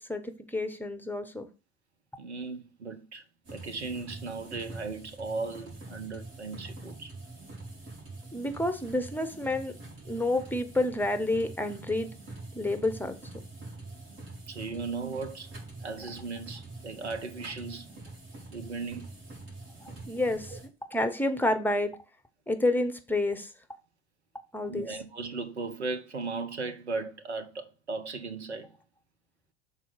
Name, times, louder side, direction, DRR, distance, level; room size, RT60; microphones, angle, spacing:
voice 1, 0.0-1.5 8.3-9.7 10.0-12.1 12.5-13.2 19.8-20.5 20.9-22.0 22.5-23.5 24.5-24.9, left 2 dB, 5° left, 0.9 m, -29 dB
voice 2, 2.2-3.2 3.5-7.1 14.5-15.5 15.8-17.9 18.5-19.1 20.5-20.6 24.7-28.7, right 4 dB, 85° right, 1.0 m, -37 dB
sound 1, 3.4-20.7, right 2 dB, 45° right, 4.1 m, -45 dB
6.1 x 4.0 x 5.4 m
figure-of-eight pair, 75°, 33 cm